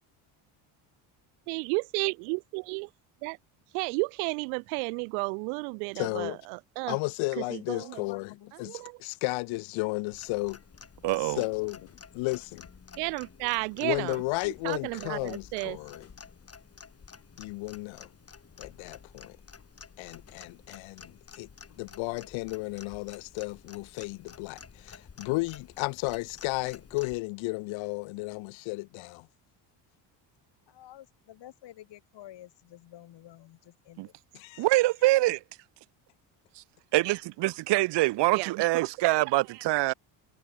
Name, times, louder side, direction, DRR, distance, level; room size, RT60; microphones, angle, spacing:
voice 1, 1.5-2.9 3.2-3.4 3.7-6.3 6.8-7.0 7.5-8.0 8.6-8.9 13.0-14.1 14.6-15.8 38.3-38.5, right 40 dB or more, 90° right, 1.5 m, -32 dB
voice 2, 5.9-6.4 6.9-10.6 11.2-11.9 12.1-12.7 13.8-16.1 17.4-18.1 18.6-19.4 20.0-21.5 21.8-29.3 34.3-34.7, left 25 dB, 80° left, 1.9 m, -33 dB
voice 3, 7.7-8.5 30.7-34.1, left 13 dB, 65° left, 7.9 m, -50 dB
Clock, 10.1-27.2, left 5 dB, 30° left, 7.0 m, -51 dB
voice 4, 11.0-11.4 34.0-34.1 34.6-35.4 36.9-39.9, right 19 dB, 65° right, 0.8 m, -25 dB
supercardioid pair, 85°, 46 cm